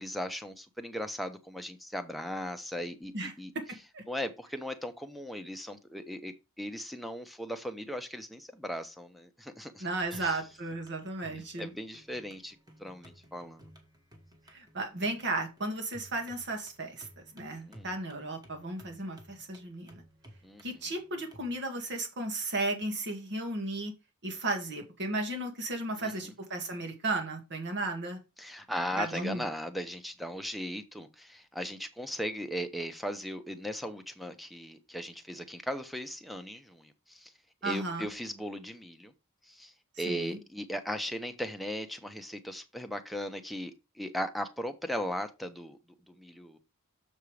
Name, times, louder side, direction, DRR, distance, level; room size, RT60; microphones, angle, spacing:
voice 1, 0.0-3.5 4.1-10.3 11.6-13.7 17.7-17.9 20.4-20.6 26.0-26.1 28.4-37.3 37.6-39.1 39.4-45.8 46.1-46.6, equal, ahead, 0.9 m, -38 dB
voice 2, 3.1-4.0 9.8-11.7 14.5-17.1 17.3-20.0 20.6-23.9 24.2-28.2 29.0-29.4 37.6-38.1 40.1-40.4, right 2 dB, 50° right, 2.1 m, -34 dB
sound 1, 10.0-21.5, equal, 20° right, 1.8 m, -57 dB
6.9 x 5.6 x 4.9 m
head